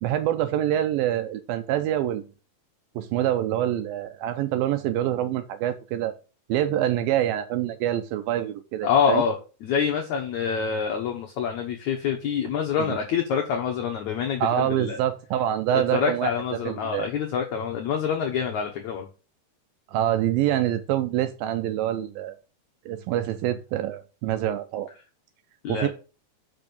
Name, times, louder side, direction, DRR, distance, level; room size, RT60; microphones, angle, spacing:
voice 1, 0.0-2.3 3.0-6.1 6.5-9.2 12.8-13.0 14.4-17.1 19.9-22.4 22.9-24.9 25.7-25.9, right 12 dB, 85° right, 10 dB, 2.1 m, -26 dB
voice 2, 8.8-9.4 9.6-15.0 15.9-19.1 25.6-25.9, left 7 dB, 80° left, 2 dB, 1.6 m, -26 dB
6.1 x 5.9 x 6.8 m, 0.34 s
omnidirectional pair, 4.8 m